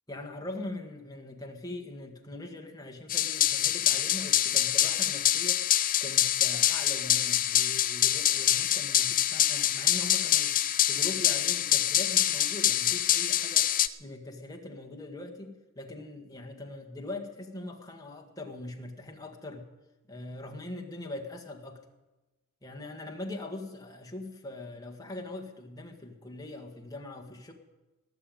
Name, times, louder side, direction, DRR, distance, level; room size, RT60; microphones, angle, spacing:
voice 1, 0.1-5.6 6.0-10.6 10.9-13.7 14.0-19.6 20.1-21.8 22.6-27.5, left 2 dB, 15° left, 2 dB, 1.8 m, -41 dB
sound 1, 3.1-13.9, left 12 dB, 40° left, 0.5 m, -25 dB
18.5 x 6.9 x 9.1 m, 1.1 s
head